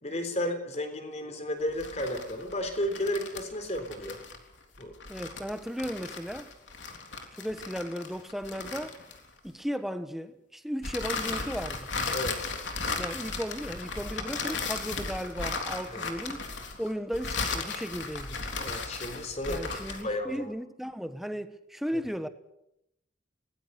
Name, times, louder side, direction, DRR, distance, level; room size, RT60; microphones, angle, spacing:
voice 1, 0.0-4.2 4.8-4.9 12.1-12.5 15.9-16.1 18.6-20.5, left 1 dB, 35° left, 3.8 m, -33 dB
sound 1, 1.7-9.5 10.8-20.1, left 4 dB, 70° left, 3.5 m, -36 dB
voice 2, 5.1-6.5 7.3-9.0 9.4-11.9 12.9-16.5 16.8-18.4 19.5-22.3, equal, ahead, 1.2 m, -35 dB
26.0 x 19.5 x 6.7 m
head